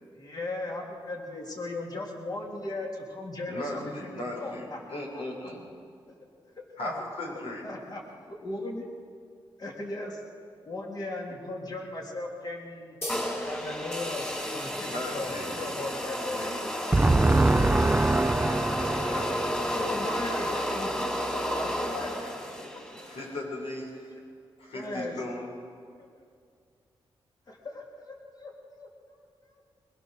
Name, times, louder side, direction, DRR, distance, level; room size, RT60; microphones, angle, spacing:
voice 1, 0.1-3.9 4.3-5.2 6.5-6.9 7.6-8.8 9.6-10.2 10.6-12.9 13.4-16.5 17.6-18.3 19.6-22.3 22.7-23.1 24.7-25.2 26.2-26.3 27.5-28.9, left 2 dB, 45° left, 0 dB, 3.6 m, -37 dB
voice 2, 3.5-5.6 6.8-7.6 14.7-15.6 16.3-16.7 18.9-19.3 22.6-24.1 24.6-25.5, left 1 dB, 80° left, -1 dB, 6.5 m, -37 dB
sound 1, 13.0-20.1, left 1 dB, 30° left, 4.3 m, -42 dB
sound 2, 13.1-23.3, equal, 10° left, 3.4 m, -32 dB
voice 3, 16.9-19.2, right 2 dB, 15° right, 12 dB, 0.5 m, -22 dB
23.0 x 21.0 x 6.6 m, 2.3 s
cardioid pair, 95°, 10 cm